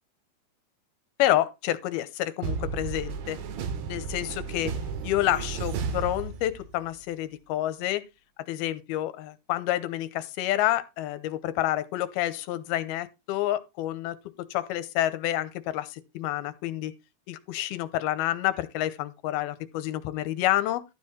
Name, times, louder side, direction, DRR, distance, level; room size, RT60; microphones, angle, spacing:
voice 1, 1.2-3.4 3.9-4.7 5.0-8.1 8.5-16.9 17.3-20.8, left 14 dB, 85° left, 2.7 m, -29 dB
sound 1, 2.4-6.9, right 5 dB, 90° right, 3.5 m, -33 dB
12.5 x 4.6 x 6.0 m
omnidirectional pair, 4.5 m